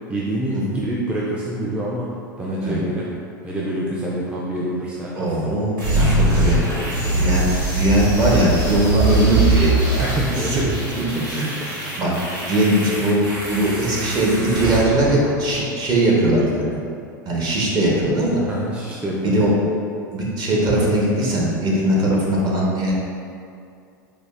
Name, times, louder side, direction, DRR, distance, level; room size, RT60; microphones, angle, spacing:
voice 1, 0.1-2.1 2.4-3.2 3.4-5.4 7.2-7.4 10.0-10.8 11.2-11.3 11.6-12.1 18.5-19.6, right 1 dB, 10° right, -6 dB, 0.4 m, -26 dB
voice 2, 5.2-6.6 7.1-7.5 7.7-10.0 10.5-10.6 11.3-12.1 12.5-13.2 13.5-16.6 17.3-18.4 19.2-19.5 20.1-22.9, right 1 dB, 40° right, -4 dB, 0.9 m, -20 dB
sound 1, 5.8-15.7, right 2 dB, 85° right, 0.9 m, -22 dB
4.8 x 2.0 x 2.4 m, 2.4 s
hypercardioid pair, 90°, 11 cm